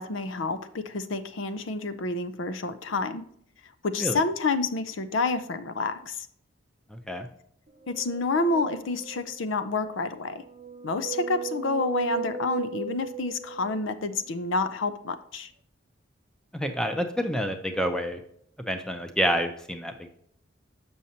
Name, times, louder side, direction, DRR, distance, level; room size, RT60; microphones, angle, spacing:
voice 1, 0.0-3.2 3.8-6.3 7.9-10.4 10.8-15.5, left 3 dB, 80° left, 11 dB, 0.6 m, -29 dB
voice 2, 6.9-7.3 16.5-18.2 18.7-20.1, equal, 5° left, 6 dB, 0.6 m, -28 dB
sound 1, 7.8-9.5 10.3-14.2, right 7 dB, 35° right, 0.6 m, -36 dB
6.9 x 6.3 x 2.8 m, 0.69 s
head